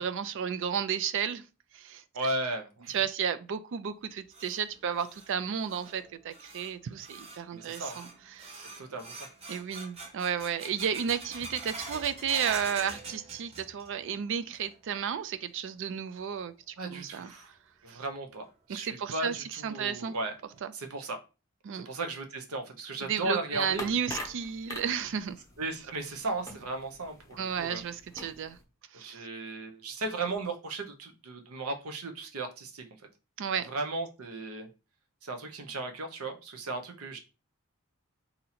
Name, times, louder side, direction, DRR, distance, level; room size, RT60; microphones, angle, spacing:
voice 1, 0.0-1.5 1.7-2.0 2.9-8.7 9.5-17.3 17.9-18.0 18.7-19.3 19.6-20.1 20.6-20.7 21.6-21.9 23.0-25.4 27.4-28.6 28.9-29.2 33.4-33.7, right 7 dB, 55° right, 0.3 m, -33 dB
voice 2, 2.1-3.0 7.5-8.0 8.8-9.2 16.8-17.5 17.8-20.3 20.7-21.2 21.8-23.9 25.6-27.8 28.9-32.8 33.7-34.7 35.2-37.2, right 2 dB, 70° right, 0.7 m, -36 dB
sound 1, 3.9-14.1 14.3-15.0 15.3-15.4 16.2-16.3 17.9-18.0 18.4-18.5 19.0-19.1 19.6-19.7 20.2-20.6, right 3 dB, 25° right, 0.7 m, -45 dB
sound 2, 23.6-28.6, left 2 dB, 15° left, 0.6 m, -45 dB
2.8 x 2.6 x 4.1 m
head